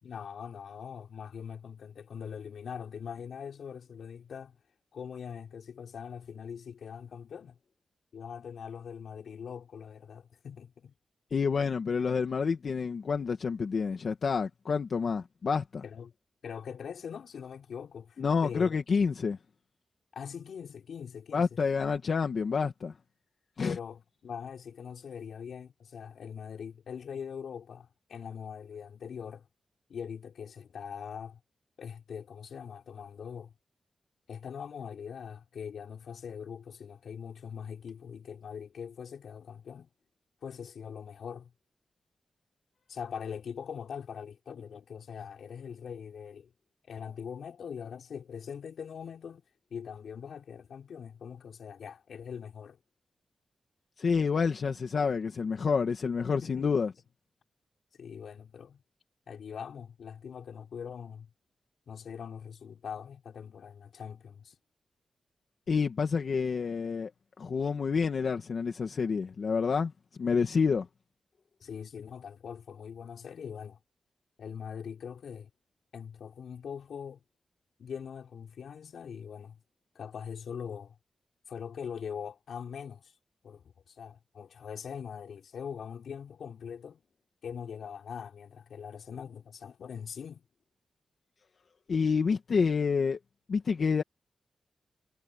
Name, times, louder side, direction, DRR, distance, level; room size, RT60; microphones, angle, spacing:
voice 1, 0.0-4.6 4.9-7.6 8.1-10.9 15.8-16.1 16.4-18.8 20.1-21.5 23.6-29.5 29.9-31.4 31.8-33.5 34.3-39.9 40.4-41.5 42.9-46.5 46.9-49.4 49.7-52.8 56.4-56.7 57.9-58.8 59.3-61.3 61.9-64.6 71.6-73.8 74.4-75.5 75.9-77.2 77.8-79.6 79.9-81.0 81.5-83.1 83.4-87.0 87.4-90.4, left 7 dB, 80° left, 5.8 m, -42 dB
voice 2, 11.3-15.8 18.2-19.4 21.3-22.9 23.6-23.8 54.0-56.9 65.7-67.1 67.4-69.9 70.2-70.9 91.9-93.2 93.5-94.0, left 5 dB, 55° left, 1.7 m, -28 dB
wide cardioid pair, 145°, 0 cm